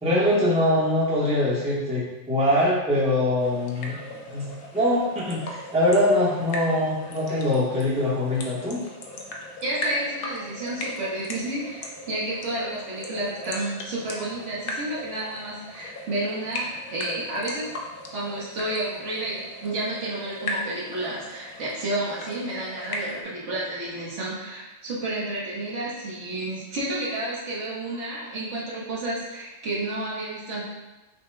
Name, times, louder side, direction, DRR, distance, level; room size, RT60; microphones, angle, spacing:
voice 1, 0.0-4.0 4.3-8.8, left 1 dB, 5° right, -7 dB, 0.8 m, -23 dB
sound 1, 3.4-23.2, left 1 dB, 55° left, 0.7 m, -38 dB
voice 2, 9.6-17.7 18.1-30.6, right 1 dB, 65° right, -7 dB, 1.5 m, -31 dB
6.3 x 2.2 x 3.3 m, 1.1 s
omnidirectional pair, 1.3 m